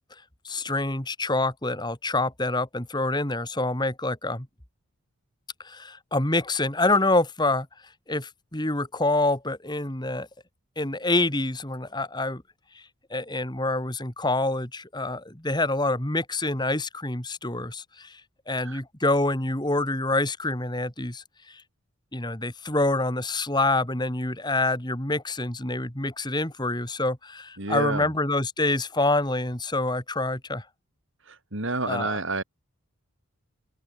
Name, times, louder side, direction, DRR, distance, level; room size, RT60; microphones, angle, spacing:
voice 1, 0.4-4.5 5.6-7.7 8.1-10.3 10.8-12.4 12.7-12.8 13.1-18.2 18.5-21.6 22.1-30.7 31.9-32.2, left 2 dB, 20° left, 2.5 m, -26 dB
voice 2, 27.6-28.1 31.3-32.4, right 2 dB, 60° right, 3.5 m, -29 dB
open air
head